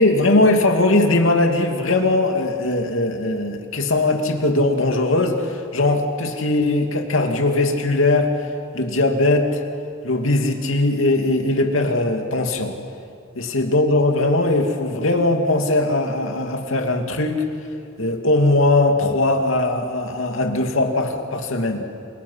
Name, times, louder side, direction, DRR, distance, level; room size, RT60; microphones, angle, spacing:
voice 1, 0.0-8.4 8.7-9.6 10.0-12.8 13.4-17.4 18.0-21.8, left 2 dB, 80° left, 3 dB, 2.6 m, -20 dB
28.0 x 28.0 x 5.8 m, 2.4 s
head